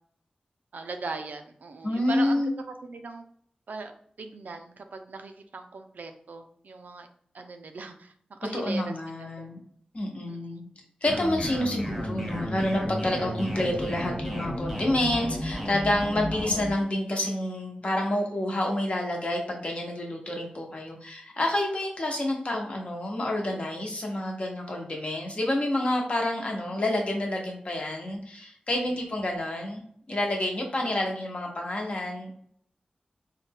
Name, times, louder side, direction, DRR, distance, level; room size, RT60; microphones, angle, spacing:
voice 1, 0.7-2.5 2.8-3.2 3.7-3.9 4.2-7.1 7.3-9.5 10.3-10.6 28.7-29.0 30.8-30.9, right 3 dB, 80° right, 6 dB, 0.4 m, -39 dB
voice 2, 1.8-2.5 8.5-9.6 9.9-10.7 11.0-32.3, left 1 dB, 50° left, 0 dB, 0.9 m, -28 dB
sound 1, 11.1-16.7, equal, ahead, 1.0 m, -32 dB
3.9 x 2.2 x 3.4 m, 0.65 s
wide cardioid pair, 95°, 3 cm